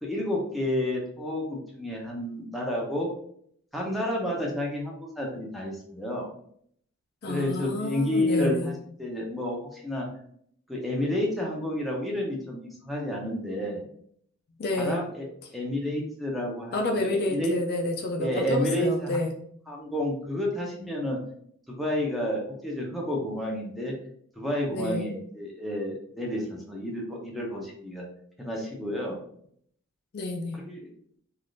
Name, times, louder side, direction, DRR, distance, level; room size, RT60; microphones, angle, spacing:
voice 1, 0.0-3.1 3.7-6.3 7.3-8.7 9.0-10.1 10.7-13.8 14.8-15.3 15.5-17.6 18.2-19.2 19.7-21.2 21.7-23.9 24.4-28.1 28.4-29.2 30.5-30.9, left 1 dB, ahead, -2 dB, 0.6 m, -30 dB
voice 2, 7.2-8.7 14.6-15.0 16.7-19.3 24.7-25.1 30.1-30.6, left 2 dB, 45° left, 2 dB, 0.3 m, -29 dB
3.4 x 2.4 x 2.5 m, 0.65 s
head